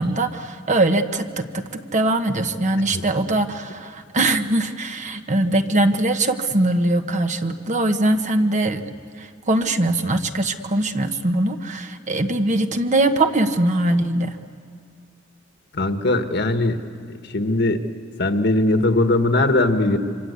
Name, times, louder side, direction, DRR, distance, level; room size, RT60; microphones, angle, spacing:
voice 1, 0.0-8.9 9.2-14.4, right 2 dB, 40° right, 7 dB, 1.2 m, -21 dB
voice 2, 15.7-16.8 17.3-17.8 18.2-20.0, left 2 dB, 60° left, 7 dB, 1.6 m, -19 dB
26.5 x 25.0 x 8.3 m, 2.3 s
head